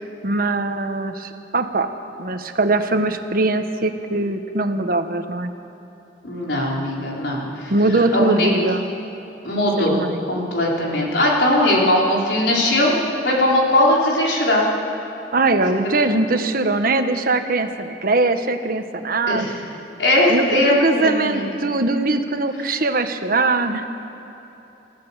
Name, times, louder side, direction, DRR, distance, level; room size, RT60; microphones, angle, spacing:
voice 1, 0.0-1.9 2.2-5.5 7.7-8.9 9.8-10.2 15.3-19.5 20.3-23.9, right 2 dB, 55° right, 7 dB, 1.3 m, -21 dB
voice 2, 6.2-8.5 9.4-10.0 10.3-14.7 15.7-15.9 19.3-19.5 20.0-21.5, left 1 dB, 90° left, -3 dB, 4.2 m, -19 dB
28.0 x 14.5 x 7.3 m, 3.0 s
head